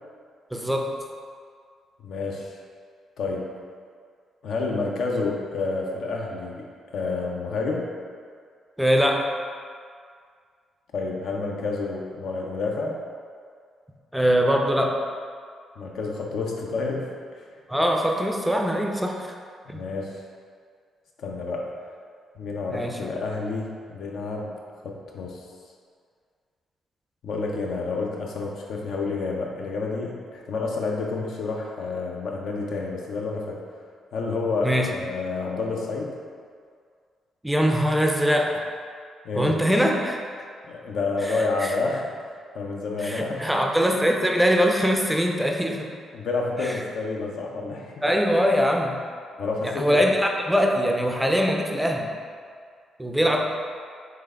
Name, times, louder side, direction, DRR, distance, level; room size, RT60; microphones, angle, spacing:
voice 1, 0.5-1.0 8.8-9.3 14.1-15.0 17.7-19.3 19.7-19.8 22.7-23.0 34.6-34.9 37.4-38.6 39.3-40.2 41.3-41.8 43.0-45.9 46.6-46.8 48.0-49.0 49.6-52.1 53.0-53.5, equal, 5° right, 2 dB, 0.4 m, -22 dB
voice 2, 2.0-2.6 3.2-3.5 4.4-6.7 6.9-7.9 10.9-13.0 15.8-17.1 19.7-20.2 21.2-21.7 22.4-24.5 24.8-25.4 27.2-33.6 34.1-36.2 39.2-39.6 40.7-42.1 42.5-43.7 46.1-48.0 49.4-50.1, left 3 dB, 65° left, -1 dB, 0.4 m, -29 dB
3.3 x 3.3 x 2.2 m, 2.1 s
hypercardioid pair, 40°, 0 cm